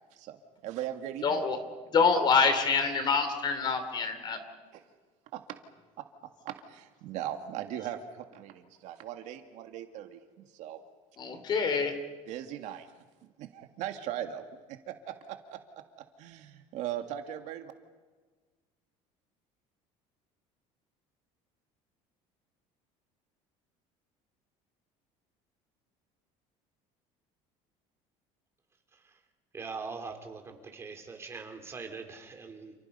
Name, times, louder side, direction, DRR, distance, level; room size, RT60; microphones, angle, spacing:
voice 1, 0.6-1.4 4.7-4.8 5.3-5.4 6.5-10.8 12.3-12.9 13.2-15.6 16.2-17.7, right 11 dB, 60° right, 6 dB, 2.0 m, -39 dB
voice 2, 1.2-1.6 1.9-4.4 11.2-11.9, left 5 dB, 35° left, 9 dB, 3.1 m, -26 dB
voice 3, 29.5-32.7, right 4 dB, 20° right, 4 dB, 3.4 m, -42 dB
29.5 x 29.0 x 5.5 m, 1.4 s
cardioid pair, 160°, 14 cm